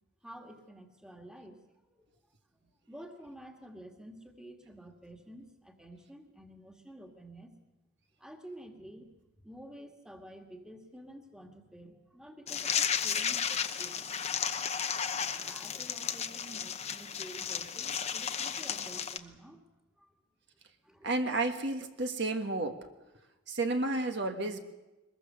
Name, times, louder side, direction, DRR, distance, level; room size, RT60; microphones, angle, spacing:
voice 1, 0.2-1.6 1.9-2.1 2.5-7.5 8.2-14.3 15.3-19.6 20.0-20.1 20.8-21.1, right 1 dB, 5° right, 3 dB, 1.9 m, -50 dB
sound 1, 12.5-19.2, left 7 dB, 30° left, 0.9 m, -33 dB
voice 2, 21.0-22.9 23.5-24.6, right 2 dB, 55° right, 5 dB, 1.5 m, -31 dB
23.0 x 21.0 x 6.8 m, 1.1 s
head